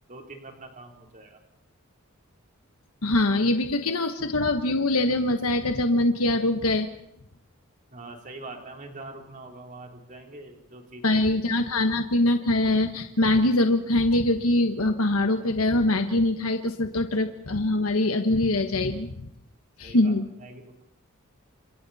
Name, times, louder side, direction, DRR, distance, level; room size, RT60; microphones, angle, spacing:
voice 1, 0.1-1.4 7.9-11.2 11.6-11.7 19.8-20.1 20.4-20.8, right 2 dB, 40° right, 2 dB, 3.6 m, -43 dB
voice 2, 3.0-6.9 11.0-19.3 19.8-20.3, left 2 dB, 80° left, 6 dB, 1.3 m, -23 dB
29.0 x 27.0 x 4.2 m, 0.75 s
head